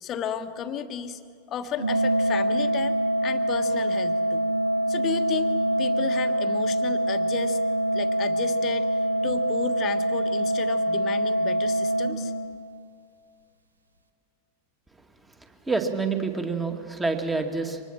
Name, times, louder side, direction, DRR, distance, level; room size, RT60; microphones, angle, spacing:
voice 1, 0.0-1.2 1.5-4.4 4.9-7.6 7.9-12.3, left 8 dB, 30° left, 9 dB, 1.4 m, -34 dB
Organ, 1.8-12.8, right 1 dB, 75° right, 1.4 m, -25 dB
voice 2, 15.7-17.8, right 4 dB, 10° right, 5 dB, 2.2 m, -27 dB
25.0 x 19.5 x 7.4 m, 2.4 s
figure-of-eight pair, 90°, 0 cm